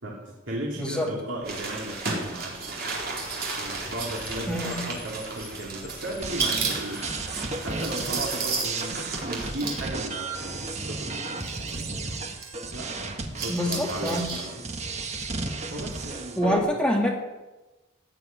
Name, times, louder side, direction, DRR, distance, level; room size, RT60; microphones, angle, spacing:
voice 1, 0.0-2.8 3.6-7.0 7.6-12.1 12.7-13.1 13.4-14.6 15.7-16.7, right 1 dB, 70° right, -2 dB, 2.9 m, -36 dB
voice 2, 0.8-1.1 4.5-4.9 13.5-14.3 16.4-17.2, left 1 dB, 5° left, 0 dB, 2.0 m, -26 dB
Car, 1.4-8.9, left 2 dB, 30° left, 5.3 m, -48 dB
sound 1, 1.4-9.8 10.6-10.7 11.4-12.5 13.2-14.4 14.7-14.8, right 4 dB, 50° right, 4.0 m, -33 dB
sound 2, 6.2-16.6, right 3 dB, 35° right, 1.4 m, -34 dB
15.5 x 9.9 x 9.5 m, 1.1 s
head